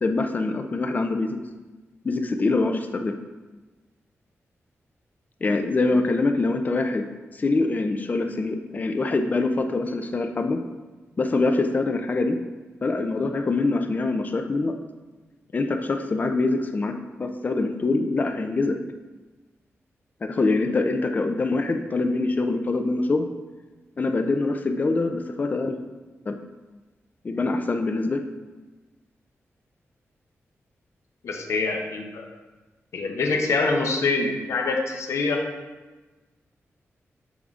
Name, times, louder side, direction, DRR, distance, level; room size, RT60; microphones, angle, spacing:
voice 1, 0.0-1.4 2.0-3.1 5.4-7.1 7.3-10.6 11.2-12.4 12.8-14.8 15.5-16.9 17.2-18.8 20.2-23.3 24.0-25.8 26.3-26.4 27.2-28.2, left 3 dB, 35° left, 6 dB, 0.3 m, -24 dB
voice 2, 31.2-32.3 32.9-35.4, left 3 dB, 70° left, 2 dB, 0.6 m, -25 dB
6.3 x 3.5 x 2.4 m, 1.2 s
wide cardioid pair, 100°, 5 cm